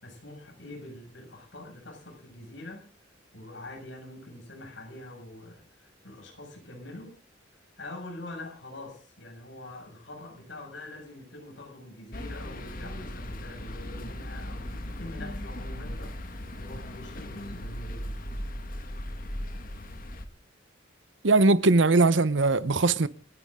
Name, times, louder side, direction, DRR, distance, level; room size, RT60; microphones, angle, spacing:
voice 1, 0.0-2.8 3.3-7.1 7.8-18.4, left 2 dB, 65° left, 6.5 m, -44 dB
sound 1, 12.1-20.2, left 1 dB, 45° left, 1.8 m, -38 dB
voice 2, 21.2-23.1, right 3 dB, 70° right, 0.9 m, -20 dB
29.0 x 9.7 x 3.7 m
head